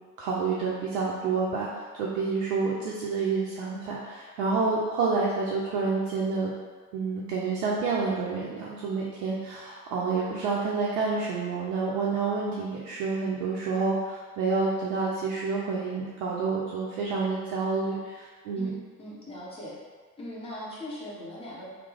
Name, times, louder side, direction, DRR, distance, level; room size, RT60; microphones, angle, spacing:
voice 1, 0.2-6.5 6.9-18.7, right 4 dB, 55° right, -5 dB, 0.6 m, -28 dB
voice 2, 18.5-19.7 20.2-21.7, left 1 dB, 10° left, -7 dB, 0.9 m, -40 dB
3.0 x 2.1 x 3.4 m, 1.4 s
figure-of-eight pair, 60°, 49 cm